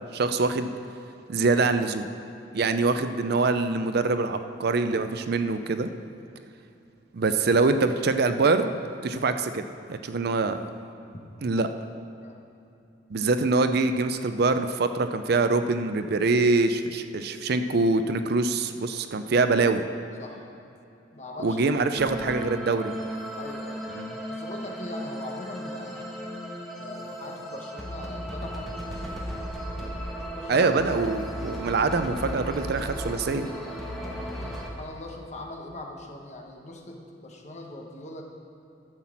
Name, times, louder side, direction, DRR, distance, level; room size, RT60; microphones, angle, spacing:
voice 1, 0.1-0.7 1.3-2.1 2.5-5.9 7.1-8.7 9.0-9.6 9.9-10.6 11.4-11.7 13.1-19.8 21.4-22.9 23.9-24.1 30.5-33.5, right 3 dB, 55° right, 9 dB, 0.5 m, -24 dB
voice 2, 21.1-22.2 23.3-23.9 24.3-26.2 26.7-29.5 29.7-30.7 34.0-38.2, left 1 dB, 35° left, 1 dB, 1.2 m, -41 dB
sound 1, 22.0-34.7, equal, ahead, 1.4 m, -35 dB
12.0 x 5.9 x 7.4 m, 2.7 s
head